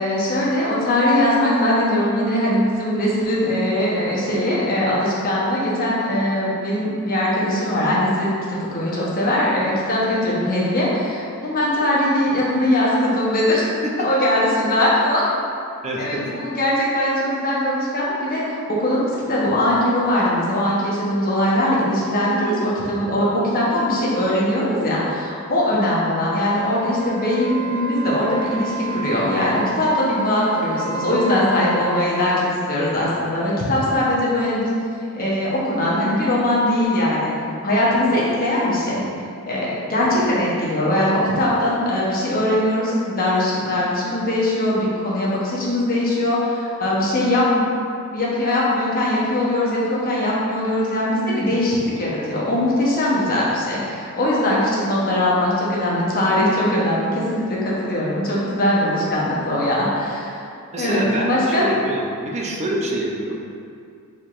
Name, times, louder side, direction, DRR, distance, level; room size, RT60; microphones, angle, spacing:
voice 1, 0.0-13.6 14.0-15.2 16.0-34.7 35.1-37.3 37.6-39.1 39.5-47.6 48.1-60.5 60.8-61.7, left 1 dB, 40° left, -6 dB, 0.9 m, -21 dB
voice 2, 15.8-16.3 60.7-63.5, right 1 dB, 30° right, -1 dB, 0.5 m, -26 dB
Wind instrument woodwind instrument, 26.4-32.4, right 3 dB, 55° right, 1.1 m, -31 dB
4.6 x 3.6 x 2.5 m, 2.4 s
head